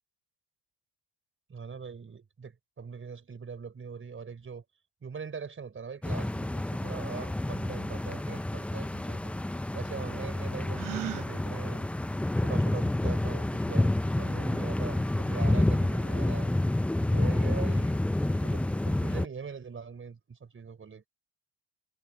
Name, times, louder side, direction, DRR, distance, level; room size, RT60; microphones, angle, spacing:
voice 1, 1.5-4.6 5.0-9.4 9.7-11.9 12.4-16.6 17.1-18.1 18.4-21.1, right 6 dB, 25° right, 5.4 m, -42 dB
sound 1, 6.0-19.3, left 1 dB, 5° left, 0.4 m, -29 dB
Gasp, 10.7-11.3, right 15 dB, 45° right, 0.6 m, -36 dB
supercardioid pair, 100°, 45 cm